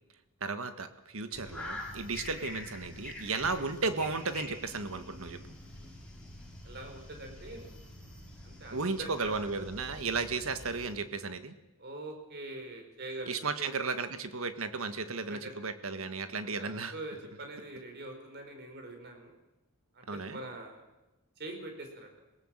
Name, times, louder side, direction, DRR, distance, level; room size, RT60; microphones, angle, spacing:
voice 1, 0.4-5.4 8.7-11.5 13.3-16.9 20.1-20.4, right 4 dB, 75° right, 9 dB, 1.6 m, -34 dB
sound 1, 1.3-10.9, left 1 dB, 5° left, 6.2 m, -46 dB
voice 2, 6.6-7.7 8.4-9.6 11.8-13.7 15.3-15.5 16.4-19.3 19.9-20.8 21.4-22.1, right 2 dB, 50° right, 4 dB, 4.5 m, -44 dB
26.5 x 17.5 x 7.5 m, 1.0 s
head